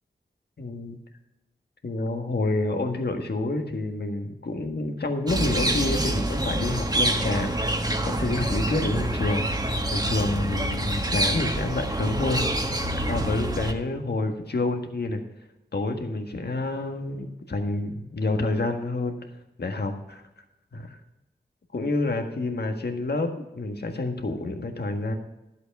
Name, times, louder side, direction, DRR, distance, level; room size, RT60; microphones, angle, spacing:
voice 1, 0.6-1.0 1.8-12.7 13.1-15.2 15.7-19.2 19.6-20.2 20.7-21.0 21.7-25.1, left 2 dB, 70° left, 5 dB, 1.7 m, -28 dB
sound 1, 5.3-13.7, right 1 dB, 20° right, 1.4 m, -26 dB
12.0 x 8.0 x 5.4 m, 0.94 s
wide cardioid pair, 65°, 18 cm